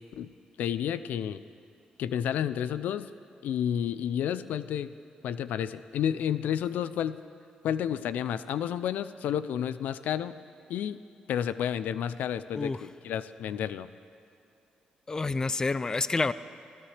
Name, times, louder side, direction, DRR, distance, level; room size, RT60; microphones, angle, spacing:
voice 1, 0.6-1.4 2.0-3.1 3.4-4.9 5.2-7.2 7.6-10.3 10.7-11.0 11.3-13.9, left 9 dB, 85° left, 14 dB, 0.4 m, -31 dB
voice 2, 15.1-16.3, left 3 dB, 25° left, 15 dB, 0.4 m, -28 dB
24.0 x 15.5 x 3.3 m, 2.7 s
cardioid pair, 105°, 3 cm